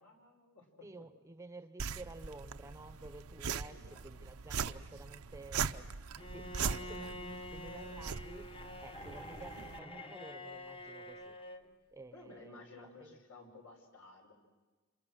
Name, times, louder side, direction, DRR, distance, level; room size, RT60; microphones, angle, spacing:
voice 1, 0.0-0.7 1.0-1.1 3.7-4.0 12.1-14.3, left 2 dB, 75° left, 1 dB, 5.5 m, -55 dB
voice 2, 0.8-8.5 8.8-11.4 11.9-13.2, right 2 dB, 15° right, 10 dB, 0.7 m, -52 dB
sound 1, 1.8-9.8, right 6 dB, 90° right, 0.7 m, -41 dB
Bowed string instrument, 6.2-11.7, left 1 dB, 25° left, 1.0 m, -47 dB
29.0 x 26.5 x 6.4 m, 1.3 s
head